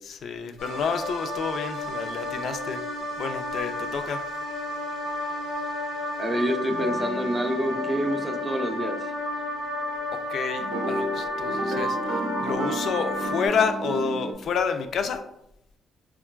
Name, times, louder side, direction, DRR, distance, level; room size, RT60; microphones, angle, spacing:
voice 1, 0.1-2.8 3.2-4.2 10.3-15.2, left 5 dB, 65° left, 8 dB, 0.3 m, -29 dB
sound 1, 0.6-13.5, left 1 dB, 85° left, 0.7 m, -32 dB
voice 2, 6.2-9.0, right 1 dB, 25° right, 5 dB, 0.4 m, -27 dB
sound 2, 6.7-9.1 10.6-14.3, right 2 dB, 80° right, 0.5 m, -33 dB
3.6 x 2.3 x 2.2 m, 0.78 s
cardioid pair, 90°, 0 cm